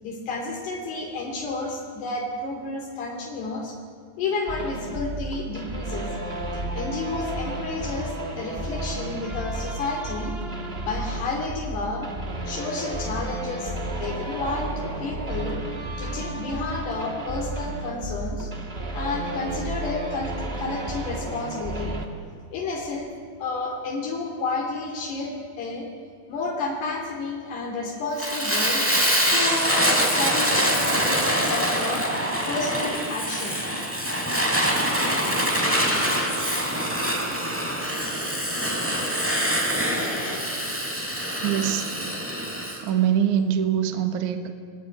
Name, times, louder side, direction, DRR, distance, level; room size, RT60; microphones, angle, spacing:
voice 1, 0.0-3.8 4.2-6.1 6.7-10.3 10.8-12.1 12.5-15.6 16.0-18.5 18.9-22.0 22.5-23.1 23.4-25.9 26.3-28.9 29.3-32.1 32.5-33.6, left 3 dB, 80° left, 0 dB, 5.0 m, -31 dB
sound 1, 4.5-22.1, right 1 dB, 30° right, 1.0 m, -32 dB
Fire, 28.2-42.8, equal, 5° right, 3.8 m, -24 dB
voice 2, 41.4-41.9 42.8-44.5, right 9 dB, 60° right, 8 dB, 2.4 m, -23 dB
29.0 x 21.0 x 9.7 m, 2.2 s
omnidirectional pair, 4.7 m